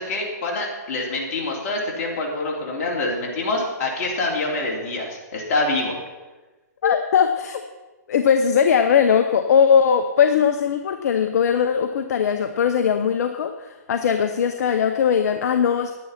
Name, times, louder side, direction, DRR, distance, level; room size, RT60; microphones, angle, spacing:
voice 1, 0.0-6.0, left 2 dB, 45° left, -1 dB, 3.5 m, -26 dB
voice 2, 6.8-7.6 8.1-15.9, left 7 dB, 65° left, 8 dB, 0.8 m, -19 dB
10.0 x 9.5 x 5.8 m, 1.2 s
hypercardioid pair, 135°, 9 cm